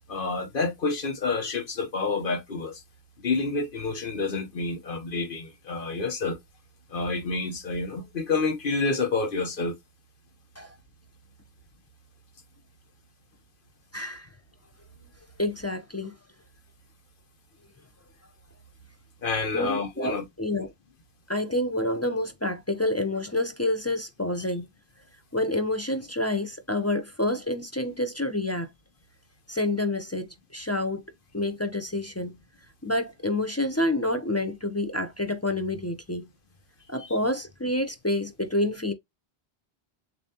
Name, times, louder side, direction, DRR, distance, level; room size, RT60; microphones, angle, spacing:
voice 1, 0.1-2.8 3.2-6.4 6.9-9.8 19.2-20.2 37.0-37.1, left 4 dB, 60° left, 1.1 m, -28 dB
voice 2, 13.9-14.3 15.4-16.1 19.5-20.7 21.3-24.7 25.3-28.7 29.5-31.0 31.3-32.4 32.8-36.3 36.9-38.9, left 1 dB, 20° left, 0.4 m, -28 dB
6.9 x 2.7 x 2.8 m
omnidirectional pair, 1.1 m